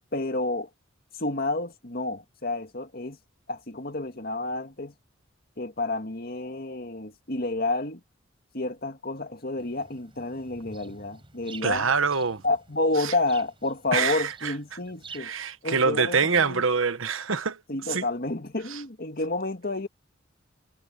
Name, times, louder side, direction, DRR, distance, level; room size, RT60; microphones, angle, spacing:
voice 1, 0.1-0.7 1.2-3.2 3.5-4.9 5.6-8.0 8.5-11.9 12.4-15.3 15.6-16.6 17.7-19.9, left 2 dB, 50° left, 2.0 m, -30 dB
sound 1, 9.6-15.2, right 4 dB, 25° right, 7.8 m, -49 dB
voice 2, 11.6-12.4 13.0-13.1 13.9-14.5 15.1-17.6 17.9-18.0 18.7-18.8, right 5 dB, 85° right, 1.2 m, -25 dB
head